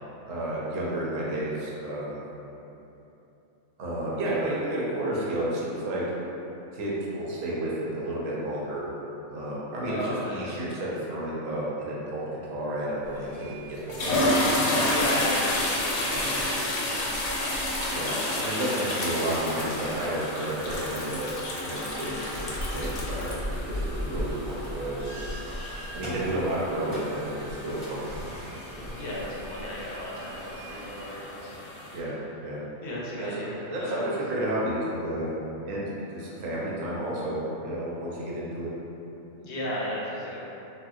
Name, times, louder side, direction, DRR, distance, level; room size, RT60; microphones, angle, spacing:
voice 1, 0.2-2.2 3.8-6.0 6.7-8.9 9.3-14.9 16.0-16.4 17.8-21.3 21.6-23.4 23.6-25.1 25.9-27.3 27.6-28.4 28.7-29.0 31.9-32.1 32.4-32.6 33.2-35.3 35.6-38.7, right 1 dB, 75° right, -6 dB, 1.0 m, -31 dB
voice 2, 9.9-10.6 14.8-18.6 18.9-19.0 29.0-31.7 32.8-34.1 39.4-40.4, left 1 dB, 65° left, -6 dB, 0.8 m, -35 dB
sound 1, 13.0-31.1, equal, 40° right, 0.8 m, -40 dB
sound 2, 13.2-13.4 13.8-32.0, left 1 dB, 85° left, 1.1 m, -31 dB
3.6 x 2.3 x 2.4 m, 3.0 s
omnidirectional pair, 1.4 m